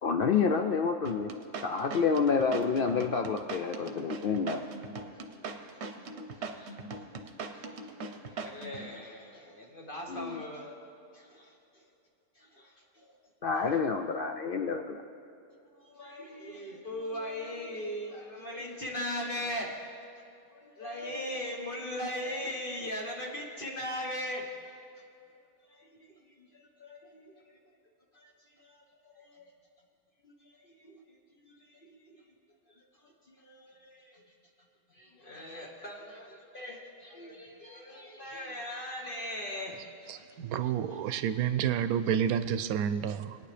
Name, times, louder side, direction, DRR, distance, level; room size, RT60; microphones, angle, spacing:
voice 1, 0.0-1.3 1.6-4.6 10.1-10.4 13.4-15.0, left 5 dB, 75° left, 4 dB, 0.5 m, -28 dB
sound 1, 1.1-8.9, right 4 dB, 55° right, 1.0 m, -40 dB
voice 2, 5.1-5.8 6.3-6.7 7.5-7.6 8.2-10.7 11.1-11.9 12.3-13.2 15.7-19.8 20.5-24.5 25.7-27.4 28.1-29.5 30.2-31.2 31.4-32.2 32.7-34.2 34.9-40.3 40.6-40.7, left 1 dB, 40° left, -1 dB, 1.3 m, -40 dB
voice 3, 40.1-43.4, right 9 dB, 85° right, 12 dB, 1.1 m, -29 dB
21.5 x 9.3 x 3.3 m, 2.6 s
omnidirectional pair, 1.5 m